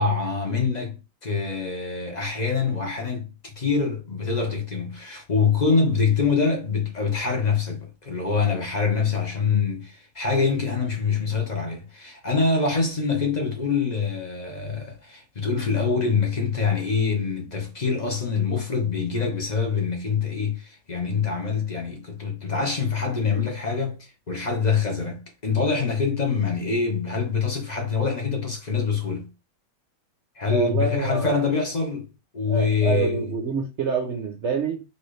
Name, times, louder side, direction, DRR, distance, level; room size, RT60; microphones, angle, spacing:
voice 1, 0.0-29.3 30.4-32.1 32.3-33.3, left 5 dB, 35° left, 0.8 m, -25 dB
voice 2, 30.5-31.4 32.5-34.8, right 5 dB, 60° right, 0.7 m, -26 dB
4.3 x 3.0 x 3.2 m
omnidirectional pair, 1.9 m